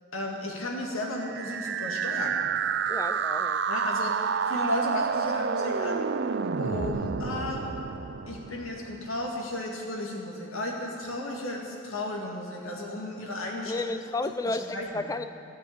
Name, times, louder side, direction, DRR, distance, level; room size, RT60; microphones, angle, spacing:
voice 1, 0.1-2.4 3.7-6.1 6.6-7.6 8.3-13.9 14.5-15.0, left 1 dB, 85° left, -1 dB, 2.1 m, -34 dB
sound 1, 1.2-9.1, right 6 dB, 55° right, 0.4 m, -29 dB
voice 2, 2.9-3.6 13.7-15.2, left 2 dB, 15° left, 11 dB, 0.3 m, -32 dB
14.5 x 6.2 x 8.8 m, 2.6 s
head